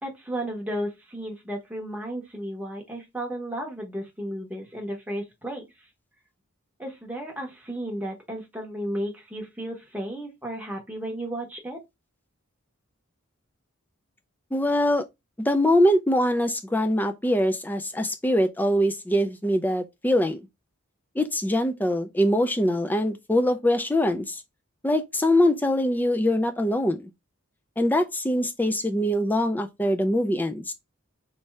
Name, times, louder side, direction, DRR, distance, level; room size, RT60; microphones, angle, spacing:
voice 1, 0.0-5.6 6.8-11.8, right 1 dB, 5° right, 0.9 m, -33 dB
voice 2, 14.5-15.0 15.4-20.4 21.2-24.4 24.8-27.1 27.8-30.7, left 1 dB, 10° left, 0.4 m, -23 dB
3.1 x 2.7 x 3.4 m
head